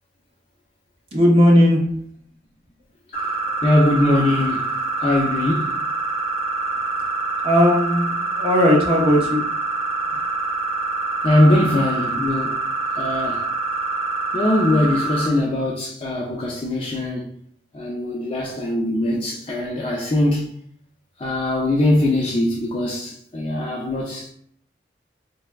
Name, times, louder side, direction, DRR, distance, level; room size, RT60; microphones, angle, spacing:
voice 1, 1.1-1.8 7.4-9.4, equal, 35° right, 0.8 m, -16 dB
sound 1, 3.1-15.3, right 3 dB, 50° left, 0.9 m, -25 dB
voice 2, 3.6-4.7 5.0-5.7 11.2-12.6 13.0-13.4 14.3-17.3 17.7-20.5 21.2-24.3, left 1 dB, 30° left, 0.4 m, -21 dB
3.3 x 3.2 x 2.2 m
head